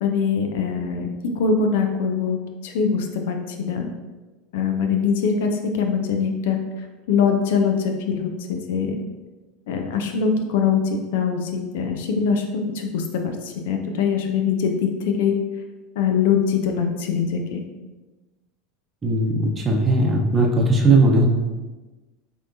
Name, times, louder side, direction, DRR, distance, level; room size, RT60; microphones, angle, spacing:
voice 1, 0.0-3.9 4.5-6.6 7.1-9.0 9.7-15.4 16.0-17.6, left 6 dB, 70° left, 4 dB, 0.4 m, -23 dB
voice 2, 19.0-21.3, right 2 dB, 25° right, -1 dB, 0.7 m, -18 dB
4.4 x 2.8 x 2.6 m, 1.2 s
hypercardioid pair, 80°, 0 cm